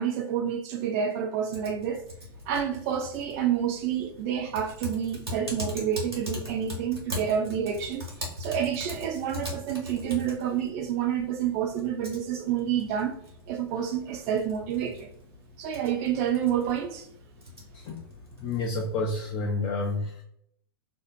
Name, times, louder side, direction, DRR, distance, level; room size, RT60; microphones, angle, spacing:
voice 1, 0.0-2.0 2.5-8.1 8.4-13.2 13.5-15.1 15.6-17.1, right 9 dB, 40° right, 0.5 m, -29 dB
Typing, 1.5-19.5, left 1 dB, 85° right, 1.1 m, -41 dB
voice 2, 18.4-20.2, left 3 dB, 35° left, 0.4 m, -29 dB
2.6 x 2.0 x 2.5 m
figure-of-eight pair, 100°, 13 cm